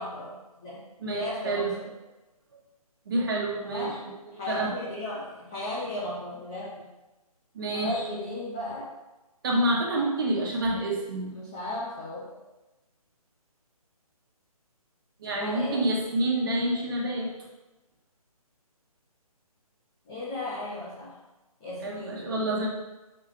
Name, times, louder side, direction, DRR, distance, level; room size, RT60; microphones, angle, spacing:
voice 1, 0.0-1.9 3.6-4.0 4.3-6.9 7.7-8.9 11.3-12.2 15.3-15.9 20.1-21.2 21.6-22.3, left 1 dB, 5° left, -8 dB, 0.4 m, -35 dB
voice 2, 1.0-1.7 3.0-3.9 4.5-4.7 7.5-7.9 9.4-11.3 15.2-17.3 21.8-22.7, right 1 dB, 35° right, -2 dB, 1.5 m, -28 dB
5.9 x 4.7 x 4.8 m, 1.1 s
figure-of-eight pair, 145°, 19 cm